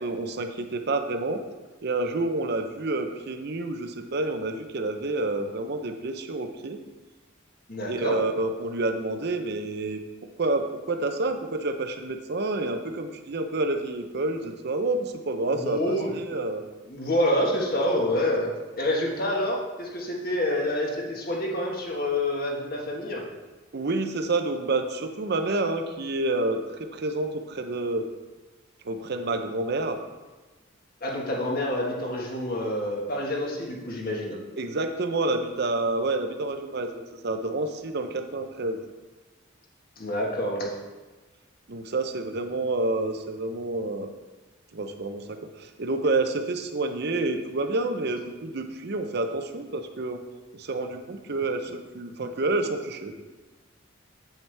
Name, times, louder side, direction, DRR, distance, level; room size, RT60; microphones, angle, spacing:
voice 1, 0.0-1.4 1.8-6.8 7.9-10.0 10.4-16.6 23.7-26.6 26.9-28.0 28.8-30.0 34.6-38.8 41.7-44.1 44.7-50.2 50.5-53.1, right 2 dB, 55° right, 6 dB, 0.7 m, -28 dB
voice 2, 7.7-8.2 15.5-16.1 16.9-18.5 18.8-23.2 31.0-34.4 40.0-40.7, left 1 dB, 45° left, -1 dB, 1.5 m, -27 dB
8.0 x 7.3 x 3.4 m, 1.2 s
head